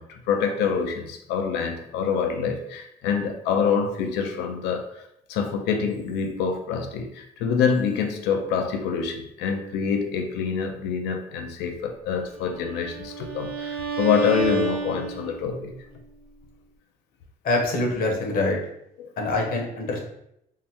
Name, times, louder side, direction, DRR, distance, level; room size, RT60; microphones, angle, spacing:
voice 1, 0.0-4.9 5.3-15.7 19.0-19.1, left 6 dB, 85° left, 4 dB, 0.5 m, -26 dB
Bowed string instrument, 12.5-15.6, right 5 dB, 80° right, 0.8 m, -30 dB
voice 2, 17.4-18.6 19.2-20.0, left 2 dB, 60° left, 1 dB, 0.8 m, -24 dB
3.7 x 2.1 x 2.8 m, 0.78 s
cardioid pair, 110°, 17 cm